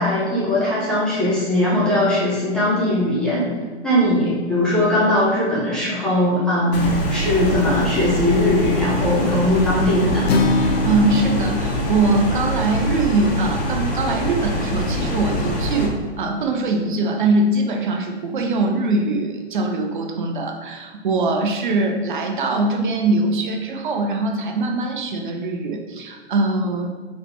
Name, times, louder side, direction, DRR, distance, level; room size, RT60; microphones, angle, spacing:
voice 1, 0.0-3.5 3.8-10.3, left 1 dB, ahead, -10 dB, 0.5 m, -19 dB
sound 1, 6.7-15.9, equal, 40° left, 1.3 m, -24 dB
Acoustic guitar, 10.3-14.5, left 3 dB, 60° left, 0.6 m, -26 dB
voice 2, 10.6-26.9, right 2 dB, 45° right, 4 dB, 0.6 m, -22 dB
4.9 x 3.1 x 3.3 m, 1.4 s
figure-of-eight pair, 120°, 35 cm